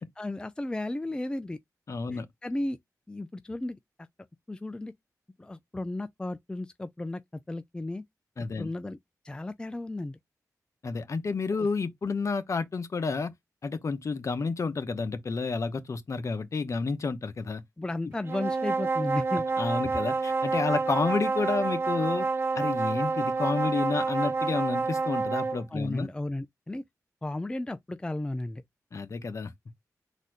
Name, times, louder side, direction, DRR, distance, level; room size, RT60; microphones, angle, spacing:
voice 1, 0.0-1.6 2.1-2.8 3.1-3.8 4.5-4.9 5.4-8.0 8.6-9.0 9.2-10.2 11.6-11.7 17.8-19.5 25.7-26.8 27.2-28.6, left 2 dB, 15° left, 0.4 m, -34 dB
voice 2, 1.9-2.3 8.4-8.7 10.8-13.3 13.6-17.6 19.6-22.3 22.5-26.1 28.9-29.5, left 4 dB, 50° left, 0.9 m, -30 dB
sound 1, 18.2-25.6, right 4 dB, 35° right, 0.5 m, -28 dB
4.1 x 2.6 x 4.7 m
wide cardioid pair, 100°, 6 cm